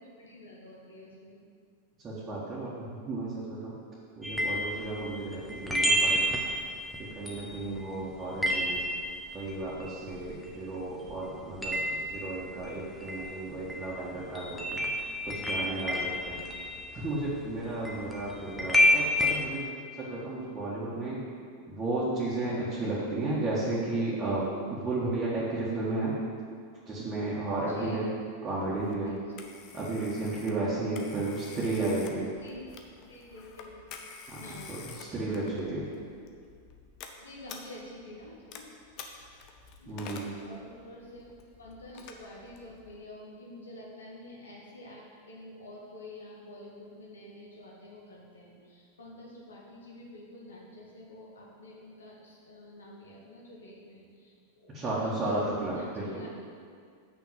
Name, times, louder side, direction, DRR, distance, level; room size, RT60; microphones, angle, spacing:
voice 1, 0.0-1.4 5.5-5.6 17.1-17.3 27.7-28.1 29.1-29.2 29.4-29.6 31.1-31.9 32.4-32.6 33.0-33.8 34.4-35.0 37.2-38.7 39.8-56.3, left 1 dB, 70° left, -3 dB, 1.9 m, -48 dB
voice 2, 2.0-3.7 4.2-6.2 7.0-8.8 9.3-14.9 15.2-16.4 16.9-19.6 20.0-21.2 21.7-24.4 24.7-26.2 26.9-28.1 28.4-29.1 29.7-32.3 34.3-34.4 34.7-35.9 39.9-40.3 54.7-56.1, right 2 dB, 20° right, -8 dB, 1.9 m, -33 dB
sound 1, 4.2-10.8 11.1-19.3, equal, 5° left, 1.2 m, -30 dB
Telephone, 28.8-43.0, left 5 dB, 40° left, 0.9 m, -49 dB
6.3 x 6.1 x 7.4 m, 2.2 s
figure-of-eight pair, 90°, 0 cm